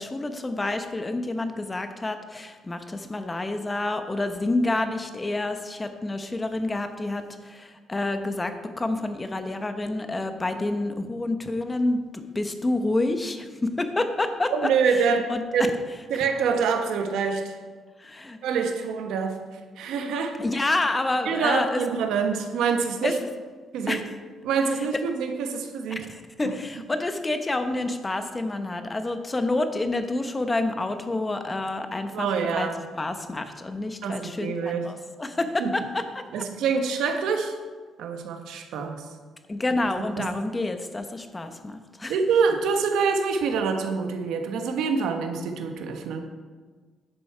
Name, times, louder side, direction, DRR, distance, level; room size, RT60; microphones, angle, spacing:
voice 1, 0.0-14.5 15.3-15.4 18.0-18.4 20.4-21.8 23.0-23.1 23.9-24.1 25.9-32.3 32.5-32.7 32.9-36.0 36.4-36.5 39.5-42.1, left 2 dB, 15° left, 8 dB, 0.9 m, -28 dB
voice 2, 14.5-15.7 16.1-17.6 18.4-20.4 21.2-23.2 23.7-24.0 24.4-26.1 26.4-26.6 32.1-32.8 34.0-34.9 35.6-35.7 36.3-37.5 38.0-39.1 40.2-40.3 42.1-46.2, right 5 dB, 80° right, 5 dB, 1.3 m, -26 dB
11.0 x 7.7 x 4.9 m, 1.4 s
cardioid pair, 135°, 0 cm